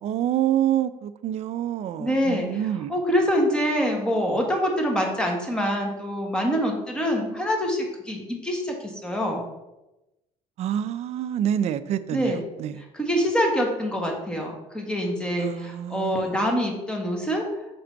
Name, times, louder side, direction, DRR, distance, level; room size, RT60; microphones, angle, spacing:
voice 1, 0.0-2.9 10.6-12.8 15.4-16.4, right 10 dB, 55° right, 13 dB, 0.4 m, -27 dB
voice 2, 2.0-2.5 2.9-9.5 12.1-12.4 12.9-17.4, equal, 5° left, 1 dB, 1.3 m, -25 dB
6.0 x 3.8 x 4.5 m, 0.98 s
cardioid pair, 115°, 13 cm